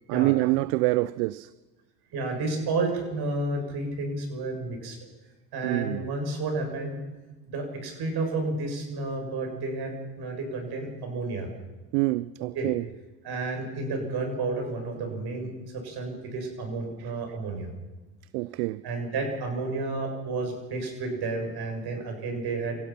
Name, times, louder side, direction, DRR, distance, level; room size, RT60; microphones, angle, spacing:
voice 1, 0.1-1.5 5.6-6.0 11.9-12.9 17.0-17.1 18.3-18.9, right 20 dB, 75° right, 0.6 m, -26 dB
voice 2, 2.1-5.0 5.5-7.0 7.5-11.5 12.5-12.7 13.2-17.7 18.8-22.8, right 3 dB, 55° right, 7.4 m, -31 dB
28.5 x 16.5 x 5.9 m
supercardioid pair, 85°, 47 cm